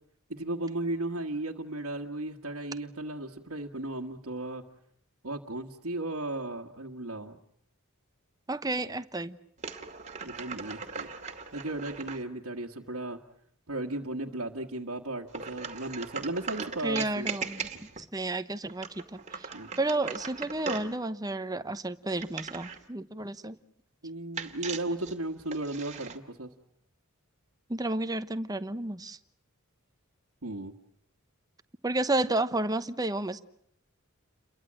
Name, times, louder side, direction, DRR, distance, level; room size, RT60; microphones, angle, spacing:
voice 1, 0.3-4.6 5.2-7.4 10.2-11.1 11.5-13.2 13.7-17.3 19.5-19.7 24.0-26.5 30.4-30.7, right 2 dB, 70° right, 1.6 m, -35 dB
voice 2, 8.5-9.4 16.8-19.5 19.8-23.6 27.7-29.2 31.8-33.4, right 2 dB, 15° right, 1.0 m, -31 dB
sound 1, 9.6-12.2 15.3-18.1 18.7-21.0 22.2-22.9 24.4-26.2, right 5 dB, 35° right, 2.3 m, -39 dB
30.0 x 22.5 x 7.6 m
head